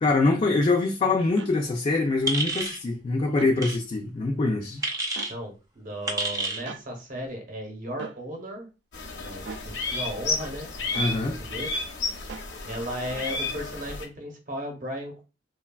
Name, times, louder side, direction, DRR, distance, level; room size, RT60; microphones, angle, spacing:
voice 1, 0.0-4.8 11.0-11.4, left 3 dB, 35° left, 0.3 m, -24 dB
sound 1, 1.4-1.5 3.3-3.6 5.2-5.3 6.7-6.9 8.0-8.2 9.4-9.7 10.9-11.2 12.3-12.5, right 5 dB, 70° right, 0.3 m, -39 dB
sound 2, 2.3-2.8 3.6-3.8 4.8-5.3 6.1-6.6, right 2 dB, 20° right, 0.5 m, -29 dB
voice 2, 5.3-8.7 9.2-11.8 12.6-15.2, equal, 50° right, 0.8 m, -36 dB
sound 3, 8.9-14.1, left 3 dB, 70° left, 0.7 m, -32 dB
3.2 x 2.2 x 2.2 m
head